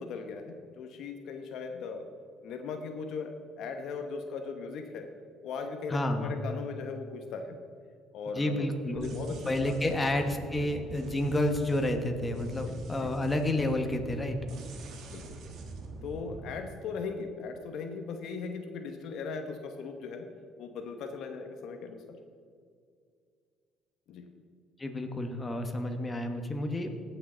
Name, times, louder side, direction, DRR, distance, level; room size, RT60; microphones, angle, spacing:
voice 1, 0.0-2.1 2.4-5.1 5.4-7.6 8.1-10.0 10.6-10.7 12.6-13.1 15.1-15.4 16.0-20.3 20.6-22.2 24.1-24.3, left 5 dB, 65° left, 5 dB, 1.0 m, -39 dB
voice 2, 5.9-6.3 8.4-9.2 9.5-14.4 24.8-26.9, left 1 dB, 20° left, 5 dB, 1.3 m, -30 dB
sound 1, 9.0-16.6, right 3 dB, 65° right, 1.4 m, -44 dB
17.5 x 6.7 x 3.9 m, 2.2 s
cardioid pair, 95°, 0 cm